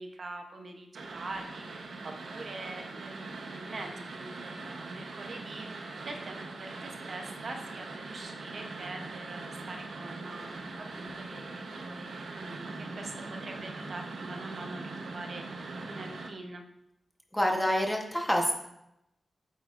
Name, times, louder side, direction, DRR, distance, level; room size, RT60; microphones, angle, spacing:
voice 1, 0.0-16.6, right 2 dB, 50° right, 3 dB, 0.9 m, -44 dB
sound 1, 0.9-16.3, right 3 dB, 90° right, 1.0 m, -41 dB
voice 2, 17.3-18.5, equal, 5° left, 1 dB, 1.1 m, -27 dB
8.2 x 8.1 x 2.6 m, 0.83 s
wide cardioid pair, 155°, 0 cm